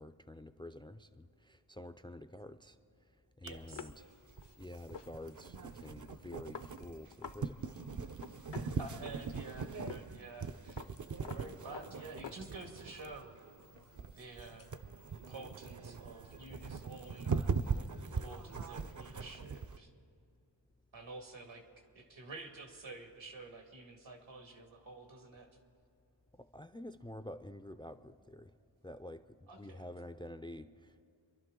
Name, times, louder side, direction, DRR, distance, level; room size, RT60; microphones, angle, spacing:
voice 1, 0.0-2.8 3.4-4.1 4.6-7.8 8.6-8.8 26.3-28.5 28.8-31.0, left 1 dB, 10° left, 10 dB, 0.4 m, -49 dB
voice 2, 3.4-3.9 8.4-10.9 11.3-13.4 14.2-19.9 20.9-25.5 29.5-29.8, right 3 dB, 80° right, 3 dB, 2.0 m, -50 dB
sound 1, 3.5-19.8, right 5 dB, 45° right, 0.6 m, -41 dB
sound 2, 3.7-7.4 7.7-7.8 8.1-9.5 9.9-10.0 10.3-12.9 13.3-14.7, left 7 dB, 70° left, 0.7 m, -50 dB
29.0 x 11.5 x 3.7 m, 2.4 s
wide cardioid pair, 90°, 45 cm